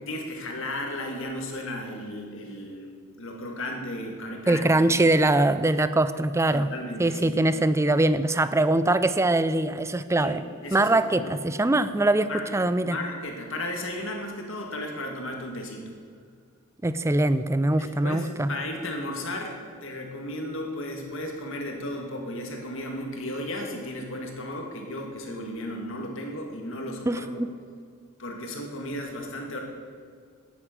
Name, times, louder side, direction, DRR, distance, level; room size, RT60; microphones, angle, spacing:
voice 1, 0.0-4.6 6.5-7.4 10.2-10.3 10.6-11.3 11.8-11.9 12.2-12.5 12.8-15.9 17.8-27.4 28.2-29.6, left 1 dB, 65° left, 2 dB, 2.1 m, -35 dB
voice 2, 4.5-6.7 7.0-10.4 10.7-13.0 16.8-18.5 27.1-27.5, right 2 dB, 15° right, 13 dB, 0.4 m, -22 dB
9.8 x 9.6 x 7.8 m, 2.1 s
head